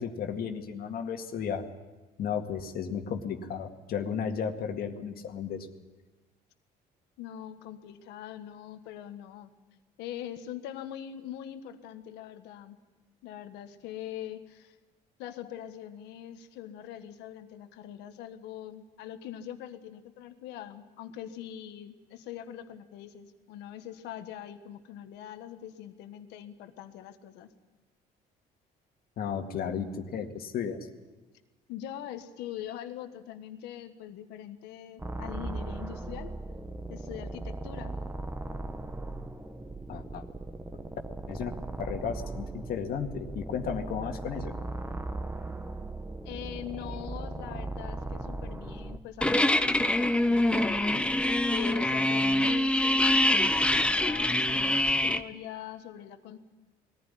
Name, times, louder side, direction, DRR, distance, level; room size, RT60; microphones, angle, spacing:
voice 1, 0.0-1.7 2.2-5.7 29.2-30.8 39.9-40.2 41.3-44.5 47.5-47.6, left 7 dB, 65° left, 5 dB, 2.0 m, -34 dB
voice 2, 7.2-9.5 10.0-12.8 13.2-14.8 15.2-27.5 31.7-36.3 36.9-38.0 46.2-51.0 51.5-56.4, left 11 dB, 90° left, 8 dB, 1.5 m, -42 dB
sound 1, 35.0-49.0, right 2 dB, 10° right, 1.1 m, -38 dB
sound 2, 49.2-55.2, left 1 dB, 5° left, 0.8 m, -25 dB
21.0 x 15.0 x 9.9 m, 1.2 s
cardioid pair, 110°, 17 cm